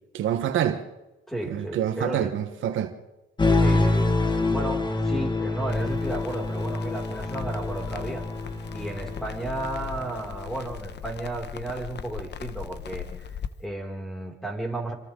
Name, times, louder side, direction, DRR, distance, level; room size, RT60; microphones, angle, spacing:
voice 1, 0.1-0.8 1.5-2.9, right 10 dB, 75° right, 1.3 m, -26 dB
voice 2, 1.3-2.3 3.6-8.2 8.7-14.9, right 2 dB, ahead, 5.7 m, -34 dB
sound 1, 3.4-10.2, left 2 dB, 20° left, 1.9 m, -26 dB
Crackle, 5.7-13.5, left 8 dB, 60° left, 1.2 m, -39 dB
27.0 x 25.0 x 3.8 m
cardioid pair, 90°, 20 cm